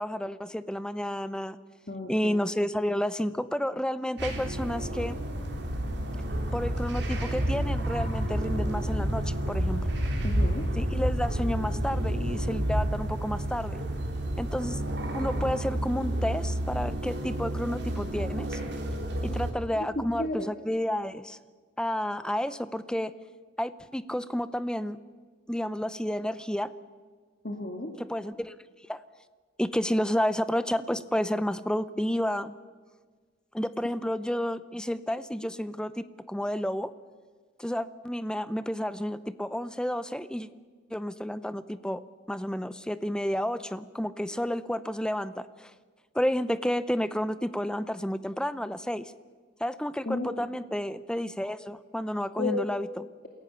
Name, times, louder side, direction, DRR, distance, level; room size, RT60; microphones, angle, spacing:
voice 1, 0.0-1.6 2.1-5.2 6.5-9.8 10.7-13.8 14.4-14.8 15.1-18.6 19.2-21.4 21.8-23.1 23.6-25.0 25.5-26.7 28.0-28.6 28.9-29.0 29.6-32.5 33.5-36.9 37.6-40.5 40.9-42.0 42.3-45.7 46.1-49.1 49.6-53.1, equal, 5° left, 14 dB, 0.7 m, -31 dB
voice 2, 1.9-2.4 10.2-10.7 20.0-20.5 27.4-27.9 50.1-50.5 52.4-52.6, left 2 dB, 50° left, 1 dB, 2.3 m, -33 dB
sound 1, 4.2-19.5, right 1 dB, 60° right, 3.7 m, -30 dB
28.0 x 17.0 x 6.9 m, 1.5 s
head